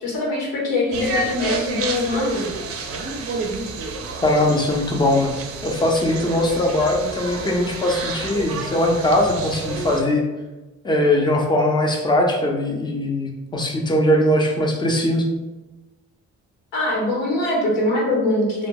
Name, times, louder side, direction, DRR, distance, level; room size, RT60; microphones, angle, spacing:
voice 1, 0.0-2.5 16.7-18.7, left 2 dB, 90° left, -4 dB, 1.0 m, -22 dB
sound 1, 0.9-10.0, right 3 dB, 50° right, 0.5 m, -30 dB
voice 2, 4.2-5.3 5.6-10.2 10.8-15.2, left 1 dB, 15° left, 0 dB, 0.5 m, -20 dB
2.9 x 2.2 x 2.8 m, 1.1 s
cardioid pair, 90°, 30 cm